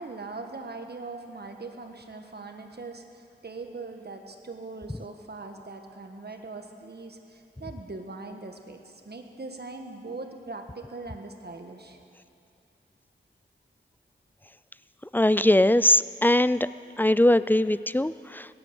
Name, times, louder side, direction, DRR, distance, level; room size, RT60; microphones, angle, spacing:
voice 1, 0.0-12.0, right 3 dB, 55° right, 5 dB, 1.5 m, -41 dB
voice 2, 15.1-16.6 17.0-18.5, left 1 dB, 10° left, 16 dB, 0.3 m, -21 dB
17.5 x 11.0 x 7.0 m, 2.6 s
cardioid pair, 45°, 20 cm